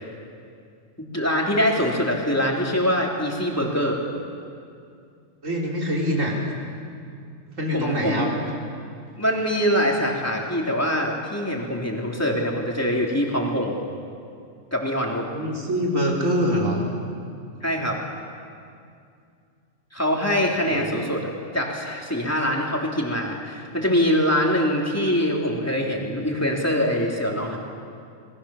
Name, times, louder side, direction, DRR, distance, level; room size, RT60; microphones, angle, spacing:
voice 1, 1.1-4.0 7.7-8.3 9.2-13.8 14.7-15.3 17.6-18.0 19.9-27.6, equal, 10° left, -1 dB, 3.4 m, -24 dB
voice 2, 5.4-6.3 7.6-8.3 15.3-16.8 20.6-20.9, equal, 90° right, -3 dB, 4.7 m, -24 dB
28.0 x 21.0 x 7.2 m, 2.4 s
omnidirectional pair, 1.3 m